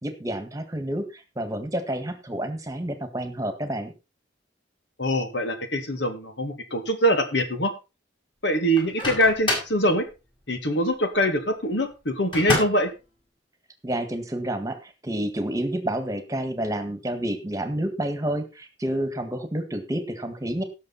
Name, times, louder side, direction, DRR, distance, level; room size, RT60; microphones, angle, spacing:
voice 1, 0.0-3.9 13.8-20.6, right 1 dB, 20° right, 8 dB, 1.7 m, -29 dB
voice 2, 5.0-7.7 8.4-10.0 10.5-12.9, equal, 65° left, 7 dB, 2.3 m, -23 dB
Microwave oven, 8.8-9.8 12.3-12.9, left 1 dB, 25° left, 5.5 m, -27 dB
17.5 x 6.6 x 4.2 m, 0.29 s
head